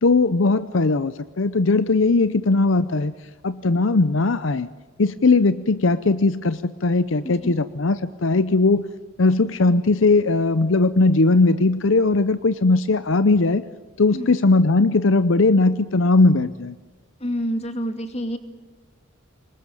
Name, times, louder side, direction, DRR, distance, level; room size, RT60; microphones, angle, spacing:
voice 1, 0.0-3.1 3.4-4.7 5.0-8.8 9.2-13.6 14.0-16.8, left 3 dB, 70° left, 14 dB, 0.7 m, -19 dB
voice 2, 7.2-7.6 14.1-14.3 17.2-18.4, equal, 30° left, 7 dB, 2.4 m, -28 dB
26.0 x 21.0 x 9.0 m, 1.3 s
head